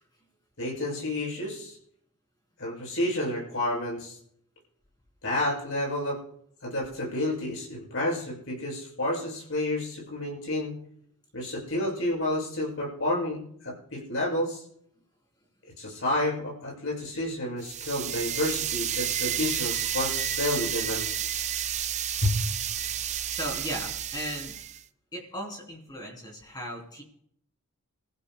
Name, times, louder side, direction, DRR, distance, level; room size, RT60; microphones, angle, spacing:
voice 1, 0.6-1.8 2.6-4.2 5.2-6.2 6.6-10.8 11.3-14.6 15.8-21.1 22.2-22.4, left 1 dB, 65° left, -3 dB, 6.9 m, -30 dB
sound 1, 17.6-24.8, right 10 dB, 30° right, 0.4 m, -31 dB
voice 2, 19.1-20.3 23.3-24.5 25.1-27.0, equal, 20° left, 0 dB, 3.3 m, -38 dB
27.5 x 15.0 x 2.2 m, 0.68 s
head